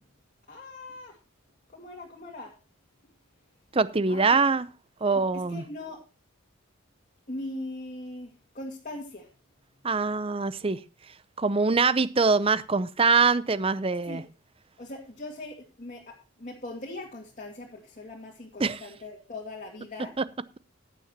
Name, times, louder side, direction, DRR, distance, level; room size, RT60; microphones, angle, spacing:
voice 1, 0.5-1.2 1.7-2.5 4.1-4.3 5.3-6.0 7.3-9.3 14.1-14.2 14.8-20.2, left 2 dB, 35° left, 2.2 m, -40 dB
voice 2, 3.7-4.6 5.0-5.6 9.8-10.8 11.4-14.2 18.6-18.8, right 4 dB, 25° right, 0.6 m, -23 dB
15.5 x 10.0 x 2.9 m
head